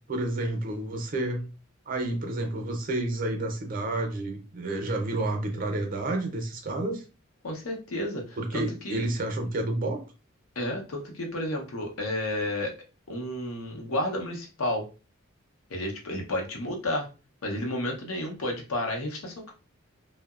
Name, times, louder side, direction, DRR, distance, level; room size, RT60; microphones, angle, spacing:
voice 1, 0.1-1.5 1.9-7.0 8.4-10.0, right 2 dB, 40° right, 4 dB, 0.5 m, -30 dB
voice 2, 7.4-9.0 10.6-12.8 13.1-14.9 15.7-17.1 17.4-19.5, left 1 dB, 85° left, 2 dB, 0.7 m, -31 dB
2.7 x 2.1 x 2.3 m, 0.33 s
head